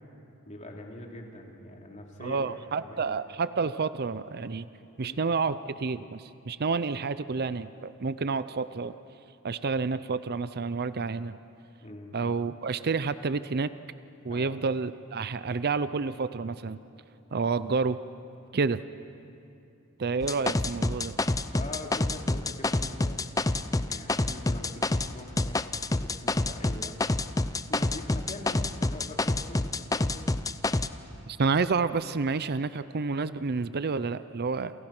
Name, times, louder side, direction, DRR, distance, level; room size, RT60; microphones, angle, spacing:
voice 1, 0.4-2.5 2.8-3.2 5.0-5.2 11.8-12.1 14.3-14.5 21.4-27.0 27.5-30.3, left 1 dB, 35° left, 0 dB, 3.1 m, -43 dB
voice 2, 2.2-4.7 5.0-8.9 9.4-11.4 12.1-13.7 14.2-16.8 17.3-18.0 18.5-18.8 20.0-21.2 31.3-34.7, right 4 dB, 45° right, 14 dB, 0.6 m, -29 dB
sound 1, 20.2-25.1 25.4-30.9, left 2 dB, 15° left, 0.6 m, -27 dB
28.5 x 28.5 x 6.0 m, 2.7 s
head